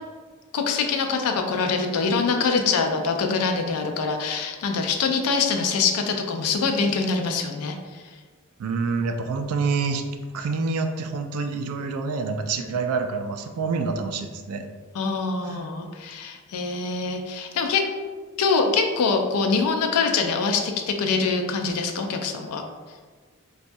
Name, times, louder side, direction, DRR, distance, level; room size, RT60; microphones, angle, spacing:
voice 1, 0.5-7.8 12.6-12.7 14.9-17.9 18.4-22.6, left 4 dB, 85° left, 4 dB, 0.4 m, -24 dB
voice 2, 8.6-10.1 10.3-14.6 15.4-15.6, right 4 dB, 75° right, 6 dB, 0.3 m, -27 dB
4.0 x 2.3 x 2.6 m, 1.5 s
head